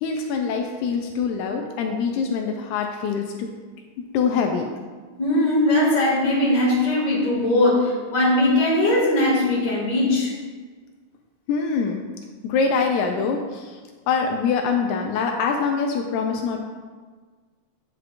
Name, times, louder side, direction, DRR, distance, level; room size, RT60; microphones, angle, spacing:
voice 1, 0.0-3.5 4.0-4.7 11.5-12.0 12.4-13.8 14.1-16.6, left 5 dB, 85° left, 3 dB, 2.0 m, -24 dB
voice 2, 5.2-10.3, left 1 dB, 35° left, -6 dB, 2.6 m, -20 dB
9.0 x 5.9 x 2.5 m, 1.5 s
omnidirectional pair, 3.4 m